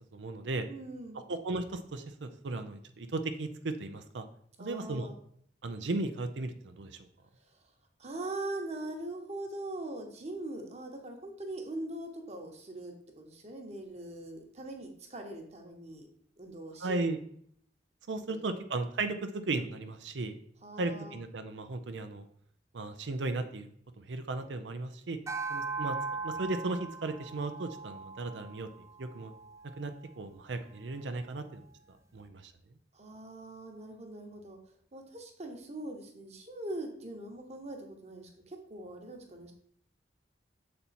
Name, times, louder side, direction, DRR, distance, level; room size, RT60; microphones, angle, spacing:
voice 1, 0.1-0.7 1.3-4.2 4.6-5.1 5.6-6.9 16.8-17.2 18.1-20.4 20.8-22.2 22.7-23.7 24.1-25.2 25.5-26.0 26.2-28.7 29.0-29.3 29.8-31.6 32.1-32.5, right 3 dB, 90° right, 8 dB, 0.6 m, -35 dB
voice 2, 0.7-1.2 4.6-5.1 7.5-7.6 8.0-16.1 16.4-17.1 18.3-18.4 20.6-21.2 32.9-34.6 34.9-39.5, right 1 dB, 40° right, 3 dB, 1.1 m, -42 dB
sound 1, 25.3-29.8, right 4 dB, 15° right, 0.4 m, -39 dB
6.8 x 4.3 x 4.2 m, 0.64 s
head